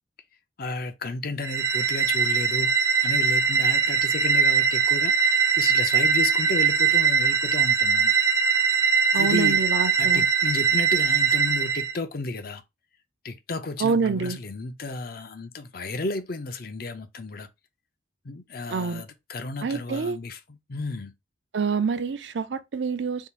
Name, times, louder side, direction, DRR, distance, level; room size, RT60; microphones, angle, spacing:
voice 1, 0.6-8.1 9.1-9.6 10.0-12.6 13.2-17.5 18.2-21.1, left 3 dB, 55° left, 0.6 m, -33 dB
sound 1, 1.4-11.9, right 6 dB, 15° right, 0.3 m, -21 dB
voice 2, 9.1-10.3 13.8-14.4 18.7-19.0 19.6-20.2 21.5-23.3, right 5 dB, 75° right, 0.5 m, -26 dB
3.7 x 2.4 x 4.4 m
head